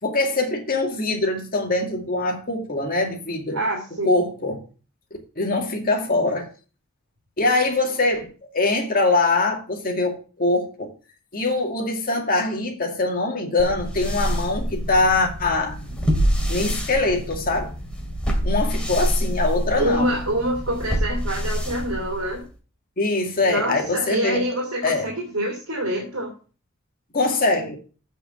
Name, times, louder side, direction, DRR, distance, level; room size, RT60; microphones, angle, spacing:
voice 1, 0.0-3.6 4.0-4.6 5.4-6.5 7.4-8.3 8.5-10.9 11.3-15.8 16.5-17.7 18.4-20.2 23.0-24.4 24.8-25.1 27.1-27.8, left 2 dB, 45° left, 2.2 m, -23 dB
voice 2, 3.5-4.2 19.8-22.4 23.4-26.3, equal, 85° right, 2.8 m, -26 dB
sound 1, 13.6-22.5, equal, 5° left, 2.4 m, -26 dB
7.9 x 5.4 x 7.5 m
head